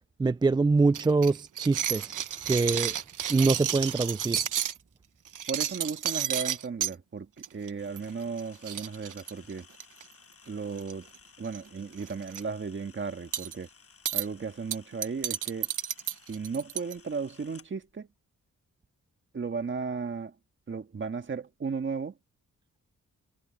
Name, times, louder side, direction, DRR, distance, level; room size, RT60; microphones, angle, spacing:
voice 1, 0.2-2.2 2.5-2.9 3.3-4.4, right 3 dB, 15° right, 0.3 m, -24 dB
sound 1, 0.9-4.8 5.3-6.9 7.4-7.7 8.0-8.1 8.4-8.5 8.7-10.0 10.8-11.2 11.4-11.6 12.0-12.4 13.3-13.5 14.1-14.3 14.7-16.9, right 10 dB, 75° right, 1.1 m, -31 dB
voice 2, 5.5-7.3 7.5-9.7 10.5-11.1 11.4-13.7 14.1-15.7 16.3-18.1 19.3-20.4 20.7-22.2, right 5 dB, 40° right, 1.7 m, -35 dB
Camera, 7.8-17.7, left 5 dB, 45° left, 7.3 m, -57 dB
wide cardioid pair, 120°, 31 cm